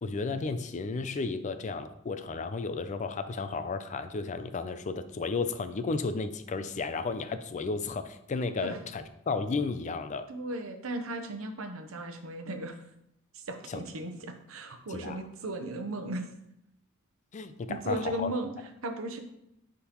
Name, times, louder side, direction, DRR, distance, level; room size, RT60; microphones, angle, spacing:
voice 1, 0.0-10.3 13.7-13.8 14.9-15.2 17.3-18.3, left 4 dB, 35° left, 10 dB, 0.4 m, -33 dB
voice 2, 10.3-12.7 13.3-16.3 17.7-18.5 18.8-19.2, right 1 dB, 70° right, 6 dB, 0.8 m, -36 dB
10.0 x 3.7 x 3.0 m, 0.80 s
head